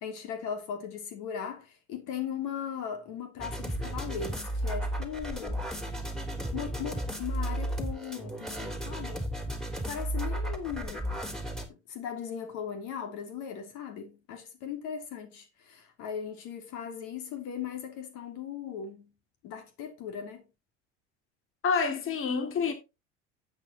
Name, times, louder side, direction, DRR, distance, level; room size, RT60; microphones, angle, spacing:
voice 1, 0.0-5.7 6.5-9.3 9.9-11.1 11.9-19.1 19.4-20.4, left 8 dB, 70° left, 3.0 m, -38 dB
sound 1, 3.4-11.7, right 1 dB, ahead, 3.2 m, -34 dB
voice 2, 21.6-22.7, left 5 dB, 40° left, 2.5 m, -28 dB
12.0 x 8.4 x 2.9 m
hypercardioid pair, 80°, 32 cm